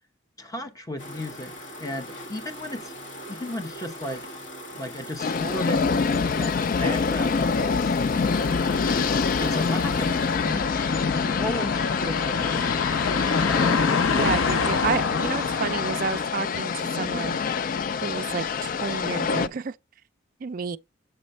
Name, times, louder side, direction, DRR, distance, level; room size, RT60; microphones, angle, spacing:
voice 1, 0.4-1.5 1.8-2.9 3.3-4.3 4.7-6.0 6.3-8.4 8.9-10.7 11.1-13.3, left 1 dB, 20° left, 0.9 m, -35 dB
sound 1, 1.0-11.4, equal, 60° left, 2.2 m, -40 dB
sound 2, 5.2-19.5, left 5 dB, 45° left, 0.3 m, -25 dB
sound 3, 8.2-16.2, left 5 dB, 80° left, 0.7 m, -29 dB
voice 2, 14.1-17.4 17.9-19.7 20.4-20.8, right 5 dB, 45° right, 0.3 m, -30 dB
7.8 x 3.0 x 5.3 m
head